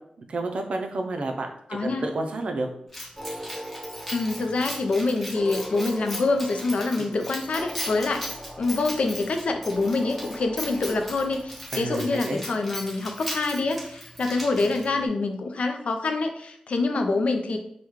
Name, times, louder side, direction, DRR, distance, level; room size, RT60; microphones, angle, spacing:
voice 1, 0.2-1.5 1.8-2.7 6.9-7.2 11.7-12.4, right 2 dB, 60° right, 4 dB, 0.4 m, -30 dB
voice 2, 1.7-2.1 4.1-8.2 8.6-17.6, left 3 dB, 65° left, 5 dB, 0.4 m, -26 dB
Keys jangling, 2.9-15.0, equal, 5° left, 0.9 m, -38 dB
sound 1, 3.2-11.9, equal, 10° right, 1.2 m, -41 dB
3.0 x 2.2 x 3.5 m, 0.70 s
wide cardioid pair, 155°, 2 cm